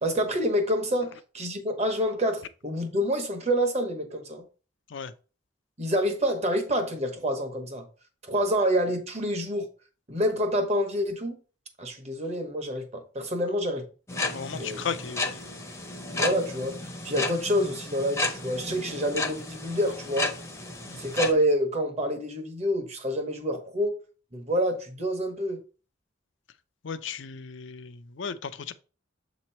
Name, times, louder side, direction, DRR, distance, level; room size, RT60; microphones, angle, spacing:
voice 1, 0.0-4.4 5.8-7.9 8.2-9.7 10.1-11.4 11.8-13.8 14.5-14.8 16.1-16.7 17.0-20.3 21.0-23.9 24.3-25.6, equal, 35° right, 1.1 m, -27 dB
sound 1, 14.1-21.3, left 2 dB, 15° left, 0.7 m, -33 dB
voice 2, 14.3-15.6 20.9-21.0 26.8-28.7, left 6 dB, 65° left, 0.5 m, -36 dB
7.5 x 3.1 x 4.3 m
head